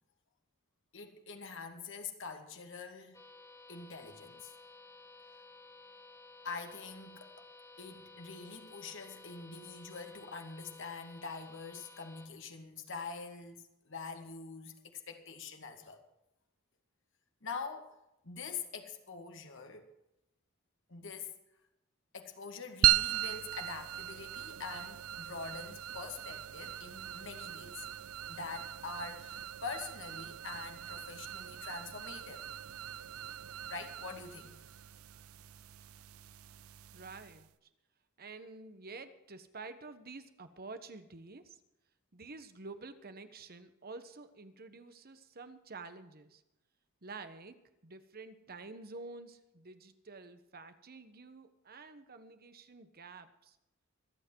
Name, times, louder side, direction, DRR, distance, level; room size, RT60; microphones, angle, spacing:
voice 1, 0.9-3.2 3.7-4.5 6.4-7.5 7.8-16.0 17.4-17.9 18.2-19.8 20.9-21.3 22.1-27.9 28.3-32.5 33.7-34.6, left 4 dB, 65° left, 4 dB, 2.3 m, -45 dB
sound 1, 3.1-12.3, left 3 dB, 15° left, 1.6 m, -55 dB
sound 2, 22.8-37.5, right 14 dB, 85° right, 0.5 m, -37 dB
voice 2, 36.9-37.5 38.2-41.6 42.1-46.4 47.0-53.6, right 3 dB, 45° right, 10 dB, 1.3 m, -49 dB
25.5 x 8.7 x 4.7 m, 0.89 s
head